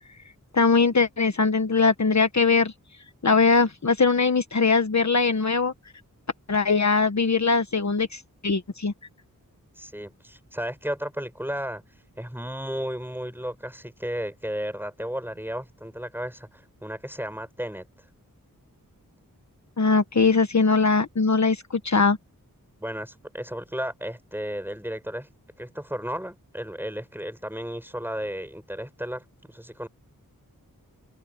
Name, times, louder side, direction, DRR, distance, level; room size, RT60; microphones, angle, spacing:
voice 1, 0.5-2.7 3.2-5.7 6.5-8.9 19.8-22.2, left 4 dB, 50° left, 1.3 m, -21 dB
voice 2, 9.8-11.8 12.2-17.9 22.8-25.3 25.6-29.9, equal, 5° right, 7.6 m, -34 dB
open air
wide cardioid pair, 55°, 35 cm